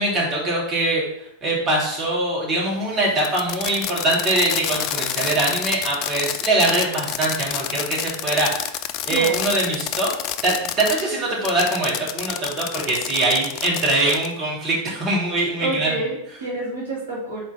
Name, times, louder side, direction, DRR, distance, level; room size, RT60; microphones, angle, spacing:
voice 1, 0.0-10.1 10.4-15.9, right 2 dB, 30° right, -4 dB, 2.9 m, -23 dB
Fireworks, 3.2-11.0 11.4-14.3, left 11 dB, 40° left, 0.4 m, -28 dB
voice 2, 9.1-9.6 15.6-17.4, right 2 dB, 65° right, -4 dB, 2.3 m, -29 dB
5.6 x 4.4 x 5.9 m, 0.78 s
figure-of-eight pair, 90°, 0 cm